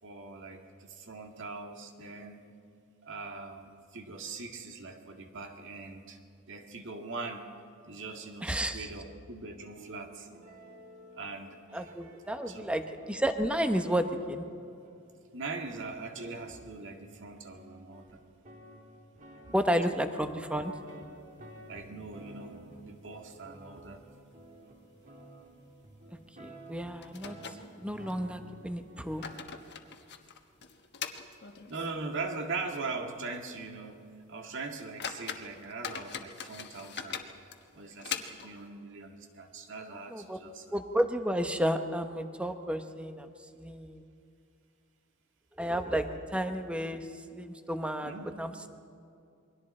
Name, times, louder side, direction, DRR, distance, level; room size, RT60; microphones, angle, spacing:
voice 1, 0.0-2.5 3.0-6.2 6.5-7.5 7.8-10.3 11.1-11.9 12.5-12.7 15.3-18.2 19.4-19.6 21.7-24.0 31.5-37.2 37.7-40.7 48.0-48.3, right 3 dB, 60° right, 3 dB, 2.0 m, -41 dB
voice 2, 8.4-8.9 11.7-14.5 19.5-20.7 26.4-29.2 40.1-40.4 40.7-43.3 43.6-44.1 45.6-48.1 48.4-48.7, equal, 5° right, 7 dB, 1.0 m, -32 dB
sound 1, 9.7-15.3 15.9-16.0 16.2-29.4, right 1 dB, 40° right, 3.0 m, -53 dB
sound 2, 20.3-21.2 21.6-21.7 22.0-22.1 22.7-23.2 23.5-23.7 24.3-24.4 24.8-24.9 26.3-26.4 27.0-28.2 28.9-32.1 32.4-32.5 33.1-33.2 33.6-33.8 34.3-34.4 34.8-38.7, left 7 dB, 50° left, 1.3 m, -42 dB
28.5 x 22.5 x 4.4 m, 2.4 s
head